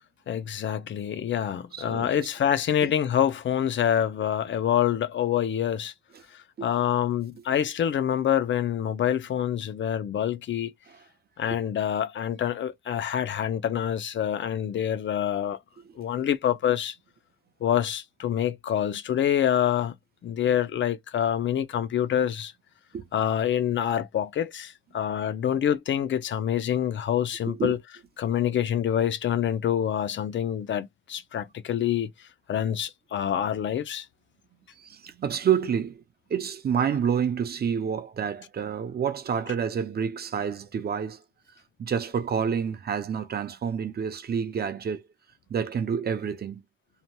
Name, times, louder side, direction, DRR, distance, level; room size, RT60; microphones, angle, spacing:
voice 1, 0.3-5.9 6.6-10.7 11.4-15.6 16.0-17.0 17.6-19.9 20.2-22.5 23.1-27.8 28.2-32.1 32.5-34.1, left 10 dB, 65° left, 0.4 m, -26 dB
voice 2, 1.7-2.3 6.1-6.2 6.6-6.8 10.9-11.0 16.2-16.3 22.9-23.1 27.5-27.8 34.8-36.0 36.3-41.2 41.8-45.0 45.5-46.6, right 7 dB, 50° right, 0.5 m, -28 dB
2.7 x 2.1 x 3.0 m
wide cardioid pair, 180°, 21 cm